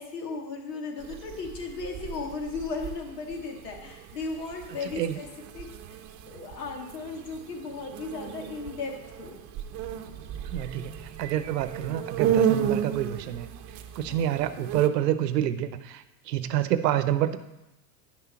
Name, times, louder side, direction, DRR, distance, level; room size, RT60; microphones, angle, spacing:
voice 1, 0.0-5.3 5.5-6.0 6.3-9.4 14.1-14.2, left 4 dB, 80° left, 2 dB, 2.4 m, -36 dB
sound 1, 1.0-14.9, right 9 dB, 35° right, 0.8 m, -33 dB
voice 2, 10.5-13.5 14.0-17.4, right 11 dB, 80° right, 12 dB, 0.8 m, -28 dB
10.0 x 6.3 x 5.8 m, 0.95 s
hypercardioid pair, 115°, 48 cm